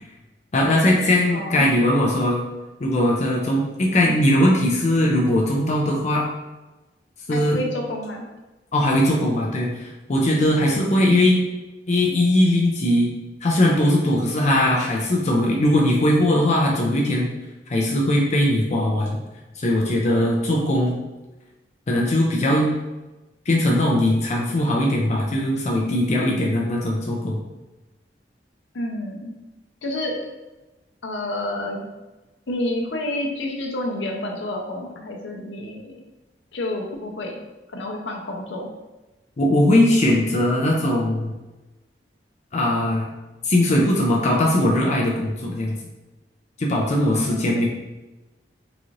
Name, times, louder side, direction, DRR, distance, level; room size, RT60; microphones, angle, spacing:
voice 1, 0.5-2.4 2.8-6.2 7.3-7.6 8.7-11.5 11.9-13.1 13.4-17.3 17.7-19.2 19.6-21.0 21.9-22.7 23.5-27.4 39.4-41.3 42.5-43.1 43.4-45.8 46.6-47.7, left 1 dB, 40° left, -2 dB, 0.5 m, -20 dB
voice 2, 1.3-1.8 7.3-8.3 28.7-29.3 29.8-30.2 31.0-31.8 32.5-36.0 36.5-37.4 37.7-38.7 47.2-47.7, left 1 dB, 85° left, 0 dB, 0.7 m, -29 dB
3.9 x 2.5 x 3.1 m, 1.1 s
head